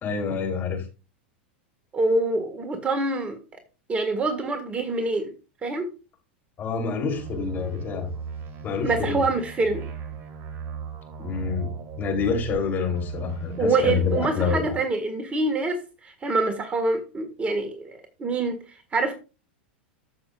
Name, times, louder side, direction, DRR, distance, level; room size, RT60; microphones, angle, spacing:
voice 1, 0.0-0.8 6.6-8.1 8.6-9.2 11.2-14.6, left 5 dB, 35° left, 3.3 m, -27 dB
voice 2, 1.9-3.4 3.9-5.3 5.6-5.9 8.8-9.8 13.6-18.6 18.9-19.1, right 3 dB, 20° right, 1.6 m, -25 dB
sound 1, 7.1-12.6 12.9-14.3, right 6 dB, 40° right, 1.8 m, -36 dB
14.0 x 6.3 x 2.4 m
hypercardioid pair, 105°, 6 cm